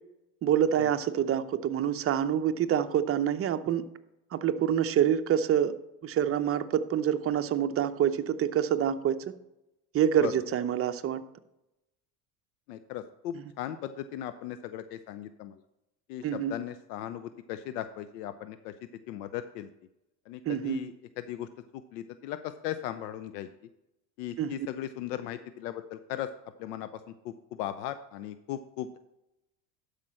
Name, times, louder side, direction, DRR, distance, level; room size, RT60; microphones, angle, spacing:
voice 1, 0.4-3.9 4.3-5.8 6.0-9.3 9.9-11.2 13.3-13.4 16.2-16.5 20.5-20.8 24.4-24.5, right 9 dB, 30° right, 10 dB, 0.6 m, -26 dB
voice 2, 12.7-15.5 16.1-18.7 19.1-19.7 20.3-21.5 21.9-23.5 24.2-26.3 26.6-26.9 27.2-29.0, left 11 dB, 75° left, 11 dB, 0.7 m, -37 dB
12.0 x 5.1 x 4.3 m, 0.90 s
hypercardioid pair, 90°, 48 cm